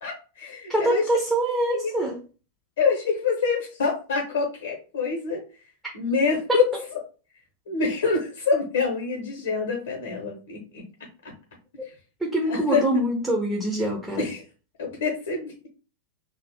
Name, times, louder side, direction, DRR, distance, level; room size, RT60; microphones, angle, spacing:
voice 1, 0.0-1.0 1.7-1.9 2.8-5.4 5.9-6.7 7.7-10.8 11.2-11.3 12.5-12.8 14.2-14.4 14.8-15.7, left 5 dB, 60° left, 0 dB, 0.7 m, -26 dB
voice 2, 0.7-2.2 6.5-6.6 12.2-14.3, right 1 dB, 10° right, -1 dB, 0.6 m, -24 dB
2.4 x 2.0 x 2.8 m, 0.34 s
figure-of-eight pair, 90°, 0 cm